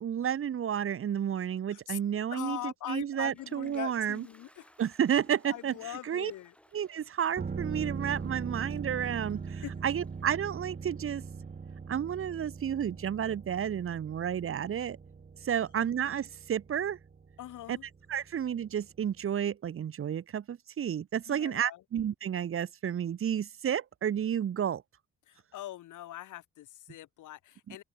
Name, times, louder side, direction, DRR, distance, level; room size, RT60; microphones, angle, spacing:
voice 1, 0.0-4.2 4.8-5.7 6.0-6.3 6.7-11.2 11.9-15.0 15.4-17.0 17.7-17.8 18.1-24.8, right 9 dB, 45° right, 1.0 m, -31 dB
voice 2, 2.3-4.7 5.4-6.6 9.6-9.7 17.4-17.9 21.3-21.8 25.3-27.8, left 14 dB, 80° left, 3.8 m, -42 dB
Toilet flush, 3.1-11.8, left 1 dB, 5° left, 6.8 m, -64 dB
sound 1, 7.3-18.9 19.2-19.3, right 5 dB, 30° right, 1.8 m, -41 dB
open air
cardioid pair, 90°, 30 cm